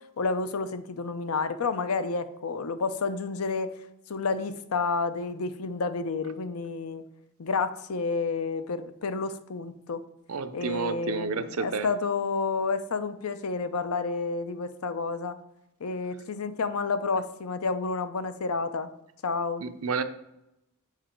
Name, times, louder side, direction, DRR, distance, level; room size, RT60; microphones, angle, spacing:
voice 1, 0.2-3.7 4.1-7.0 7.4-10.0 10.5-15.4 15.8-18.9 19.2-19.6, left 4 dB, 85° left, 11 dB, 0.6 m, -30 dB
voice 2, 10.3-11.9 19.6-20.0, right 5 dB, 80° right, 10 dB, 0.6 m, -30 dB
7.4 x 5.0 x 4.4 m, 0.85 s
head